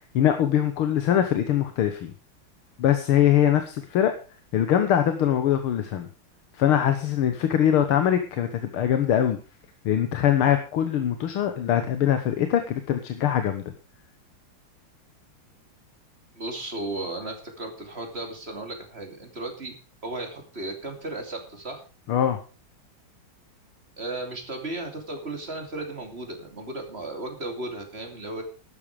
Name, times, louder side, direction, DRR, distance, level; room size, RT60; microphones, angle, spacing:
voice 1, 0.1-2.1 2.8-4.1 4.5-6.1 6.5-9.4 9.9-13.6 22.1-22.4, left 10 dB, 90° left, 8 dB, 2.0 m, -22 dB
voice 2, 16.3-19.7 20.0-21.8 24.0-28.4, right 2 dB, 30° right, 3 dB, 3.0 m, -35 dB
13.0 x 10.5 x 4.9 m, 0.36 s
omnidirectional pair, 2.3 m